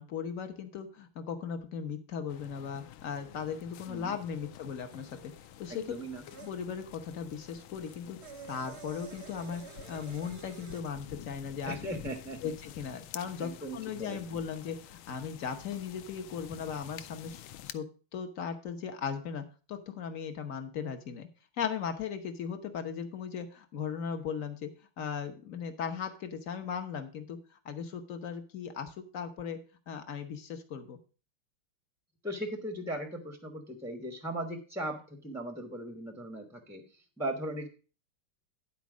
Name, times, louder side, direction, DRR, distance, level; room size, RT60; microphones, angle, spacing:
voice 1, 0.0-5.3 5.6-5.8 6.4-8.2 8.5-11.8 12.4-17.8 18.1-21.3 21.6-24.7 25.0-29.6 29.9-31.0, left 7 dB, 50° left, 7 dB, 1.1 m, -37 dB
sound 1, 2.3-17.8, left 12 dB, 80° left, 1.4 m, -49 dB
sound 2, 4.9-6.5 7.5-10.8, right 7 dB, 45° right, 0.9 m, -50 dB
voice 2, 5.7-6.2 11.6-12.5 13.4-14.4 32.2-37.7, right 1 dB, ahead, 5 dB, 0.6 m, -38 dB
10.5 x 4.5 x 6.1 m, 0.37 s
omnidirectional pair, 2.3 m